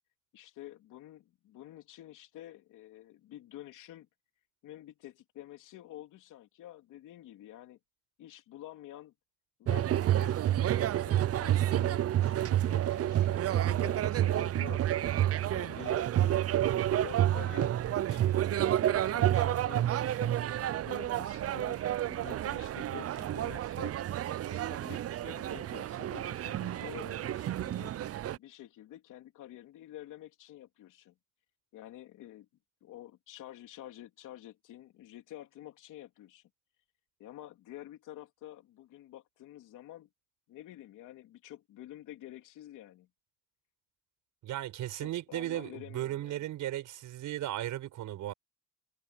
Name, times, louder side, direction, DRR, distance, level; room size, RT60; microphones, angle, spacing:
voice 1, 0.3-4.1 4.6-7.8 8.2-9.1 9.6-15.3 15.5-20.3 20.8-23.9 24.5-27.9 28.4-31.1 31.7-32.5 32.8-36.4 37.2-40.1 40.5-43.1 44.9-46.4, left 13 dB, 85° left, 3.3 m, -49 dB
sound 1, 9.7-28.4, right 12 dB, 50° right, 0.6 m, -29 dB
voice 2, 16.7-17.1 44.4-48.3, right 13 dB, 85° right, 5.5 m, -36 dB
cardioid pair, 90°, 30 cm